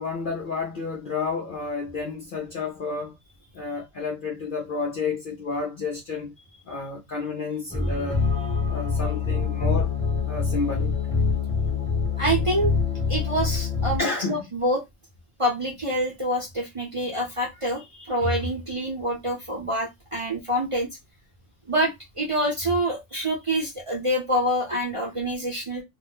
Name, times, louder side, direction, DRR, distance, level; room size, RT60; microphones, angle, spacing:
voice 1, 0.0-3.1 3.5-6.3 6.7-8.2 8.7-9.9 10.2-11.0 14.0-14.4, left 4 dB, 55° left, 0.6 m, -30 dB
sound 1, 7.7-14.0, left 5 dB, 5° left, 0.8 m, -25 dB
voice 2, 12.2-12.7 13.1-14.8 15.4-20.9 21.7-25.8, right 1 dB, 30° right, 0.7 m, -26 dB
2.5 x 2.1 x 3.4 m
omnidirectional pair, 1.4 m